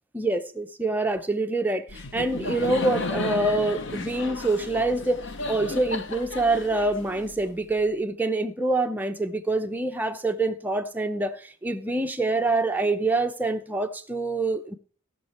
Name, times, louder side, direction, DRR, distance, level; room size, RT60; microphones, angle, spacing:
voice 1, 0.1-14.8, right 2 dB, 10° right, 0.7 m, -26 dB
Laughter, 1.9-7.7, left 3 dB, 60° left, 0.9 m, -33 dB
18.0 x 6.6 x 4.3 m
head